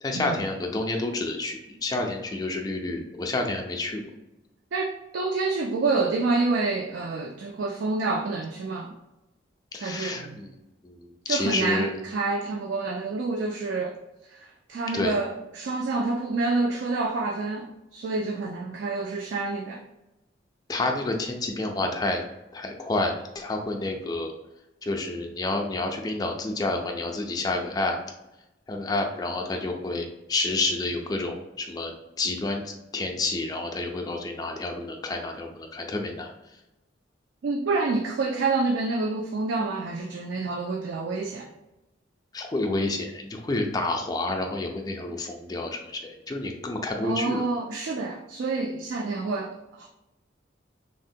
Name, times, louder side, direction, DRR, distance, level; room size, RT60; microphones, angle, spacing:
voice 1, 0.0-4.1 9.7-10.5 10.8-11.9 14.9-15.1 20.7-22.2 22.5-24.3 24.8-28.0 28.7-36.3 42.3-47.4, left 2 dB, 20° left, 2 dB, 0.3 m, -29 dB
voice 2, 4.7-8.9 9.8-10.4 11.3-14.0 14.3-19.8 37.4-41.5 47.0-49.9, right 3 dB, 65° right, 1 dB, 0.3 m, -28 dB
3.3 x 2.1 x 2.6 m, 0.95 s
head